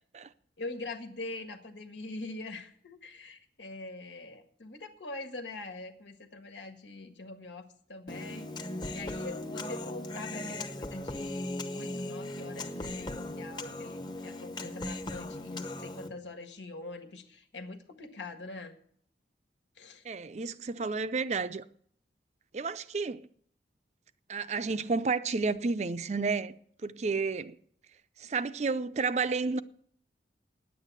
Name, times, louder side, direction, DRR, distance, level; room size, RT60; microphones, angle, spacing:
voice 1, 0.6-7.6 7.9-18.7 19.7-20.0, left 2 dB, 90° left, 1.6 m, -43 dB
Human voice, 8.1-16.1, left 1 dB, 25° left, 0.8 m, -38 dB
voice 2, 20.0-21.6 22.5-23.3 24.3-26.6 26.8-27.6 28.2-29.6, right 4 dB, 40° right, 0.5 m, -31 dB
10.0 x 8.3 x 8.2 m
head